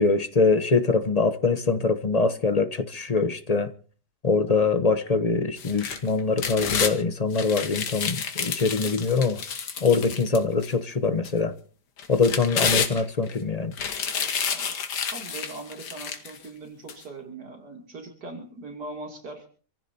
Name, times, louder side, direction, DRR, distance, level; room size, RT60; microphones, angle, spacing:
voice 1, 0.0-3.7 4.2-9.4 9.8-11.5 12.1-13.7, left 4 dB, 30° left, 0.8 m, -23 dB
sound 1, 5.6-6.9 7.3-10.7 11.2-11.3 12.0-13.3 13.7-16.4 16.9-17.0, left 6 dB, 90° left, 2.0 m, -29 dB
voice 2, 15.0-19.5, right 3 dB, 75° right, 3.4 m, -40 dB
27.5 x 15.0 x 2.8 m
omnidirectional pair, 1.7 m